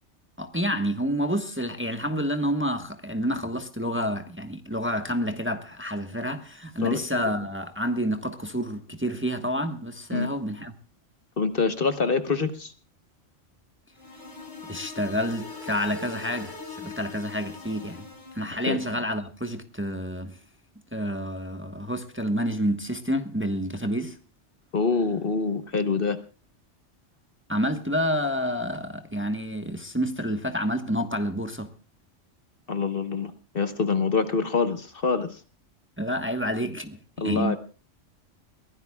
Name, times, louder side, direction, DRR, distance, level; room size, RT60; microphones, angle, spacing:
voice 1, 0.4-10.7 14.6-18.1 18.3-20.4 20.9-24.2 27.5-31.7 36.0-37.6, equal, 10° right, 1.2 m, -29 dB
voice 2, 6.8-7.2 10.1-10.3 11.4-12.7 18.7-18.8 24.7-26.2 32.7-35.4 37.2-37.6, left 4 dB, 50° left, 1.4 m, -26 dB
sound 1, 13.9-18.7, left 4 dB, 85° left, 5.2 m, -41 dB
22.5 x 16.0 x 2.3 m
omnidirectional pair, 1.2 m